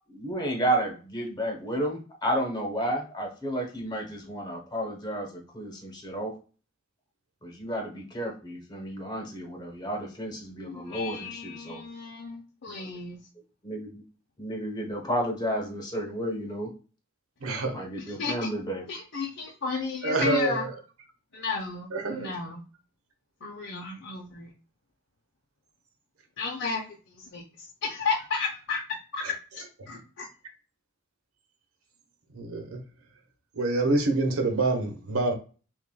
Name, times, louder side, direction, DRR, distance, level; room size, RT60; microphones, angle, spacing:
voice 1, 0.1-6.3 7.4-11.8 12.8-12.9 13.6-14.0 14.4-16.7 17.7-18.8, right 1 dB, 20° left, 1 dB, 1.0 m, -32 dB
voice 2, 10.6-13.2 18.1-18.5 18.9-20.7 21.3-22.6 23.4-24.5 26.4-28.8 29.1-29.2 29.5-30.3, left 4 dB, 55° left, -1 dB, 0.7 m, -33 dB
voice 3, 17.4-17.8 20.0-20.7 21.9-22.3 32.3-32.8 33.5-35.3, right 2 dB, 90° right, 4 dB, 1.0 m, -26 dB
6.0 x 2.5 x 2.3 m, 0.36 s
head